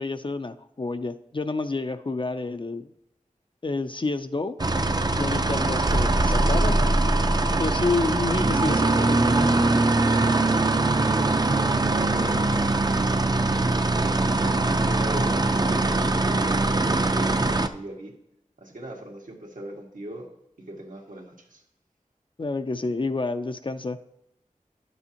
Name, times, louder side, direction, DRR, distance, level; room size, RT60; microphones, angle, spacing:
voice 1, 0.0-2.9 3.6-4.6 5.2-6.8 7.6-9.7 22.4-24.0, left 3 dB, 40° left, 9 dB, 0.4 m, -29 dB
sound 1, 4.6-17.7, right 2 dB, 30° right, 0.5 m, -22 dB
sound 2, 5.9-8.6, right 1 dB, 45° right, 0.8 m, -25 dB
voice 2, 11.1-12.5 12.8-14.2 14.8-18.1 18.6-20.3 20.6-21.6, right 1 dB, 85° right, 0 dB, 1.6 m, -40 dB
11.0 x 6.9 x 2.9 m, 0.83 s
wide cardioid pair, 55°, 13 cm